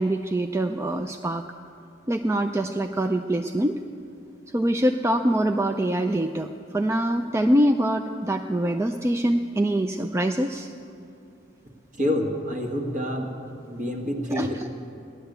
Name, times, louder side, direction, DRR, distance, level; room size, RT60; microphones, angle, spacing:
voice 1, 0.0-1.4 2.1-3.8 4.5-10.7 14.3-14.7, right 1 dB, 15° right, 6 dB, 0.4 m, -24 dB
voice 2, 12.0-13.3 13.7-14.6, left 1 dB, 40° right, 2 dB, 1.8 m, -27 dB
16.0 x 11.5 x 8.0 m, 2.7 s
head